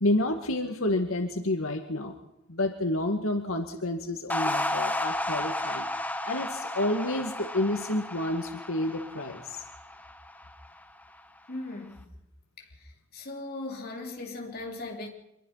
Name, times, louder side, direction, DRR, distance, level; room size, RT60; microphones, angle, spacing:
voice 1, 0.0-2.2 2.5-9.6, left 1 dB, 90° left, 2.2 m, -29 dB
sound 1, 4.3-10.8, left 1 dB, 10° left, 1.3 m, -33 dB
voice 2, 11.5-12.0 12.6-15.1, left 2 dB, 50° left, 4.1 m, -38 dB
25.5 x 22.0 x 5.9 m
head